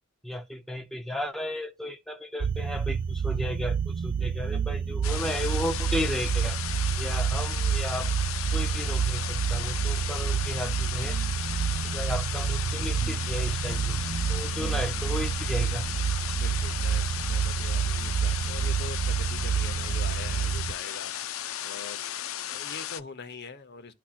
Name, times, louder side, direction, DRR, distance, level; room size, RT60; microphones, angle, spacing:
voice 1, 0.2-6.6 7.0-8.1 8.5-11.2 11.8-14.0 14.3-15.8, left 1 dB, ahead, 0.6 m, -34 dB
sound 1, 2.4-20.7, right 7 dB, 45° right, 0.4 m, -28 dB
sound 2, 5.0-23.0, left 11 dB, 80° left, 0.5 m, -35 dB
voice 2, 16.3-23.9, left 4 dB, 55° left, 0.9 m, -44 dB
12.0 x 4.3 x 2.5 m
head